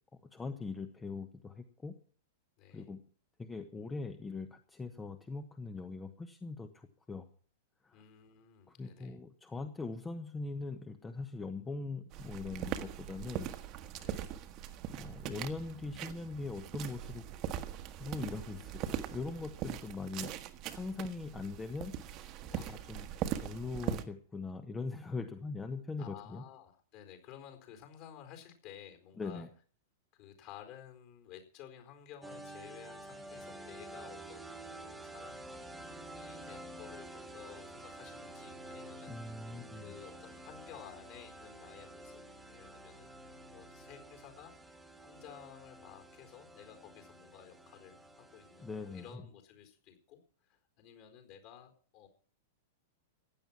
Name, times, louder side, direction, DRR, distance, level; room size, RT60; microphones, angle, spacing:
voice 1, 0.2-1.9 2.7-3.0 3.4-7.3 7.8-8.0 8.7-13.5 14.9-17.2 18.0-20.3 20.7-23.1 23.4-26.4 29.2-29.5 39.1-39.9 48.6-49.2, left 3 dB, 15° left, 8 dB, 1.2 m, -41 dB
voice 2, 2.6-2.9 7.9-9.2 14.0-14.3 18.5-19.3 22.5-22.8 26.0-29.4 30.1-35.4 36.1-39.2 39.8-42.2 42.5-44.5 45.0-52.1, left 9 dB, 40° left, 5 dB, 4.4 m, -54 dB
sound 1, 12.1-24.0, right 10 dB, 35° right, 1.4 m, -41 dB
sound 2, 32.2-49.1, right 1 dB, 5° right, 1.8 m, -50 dB
16.0 x 11.0 x 5.9 m, 0.43 s
figure-of-eight pair, 95°, 0 cm